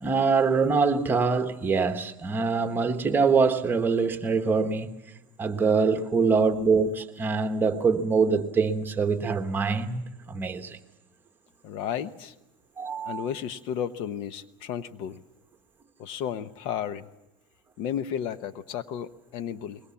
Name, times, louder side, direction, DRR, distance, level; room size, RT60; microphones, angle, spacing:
voice 1, 0.0-5.0 5.4-10.8 12.8-13.2, right 4 dB, 20° right, 1.4 m, -24 dB
voice 2, 11.6-12.3 13.0-15.2 16.0-17.1 17.8-19.8, left 9 dB, 60° left, 1.0 m, -33 dB
23.5 x 21.5 x 7.2 m
supercardioid pair, 125°, 10 cm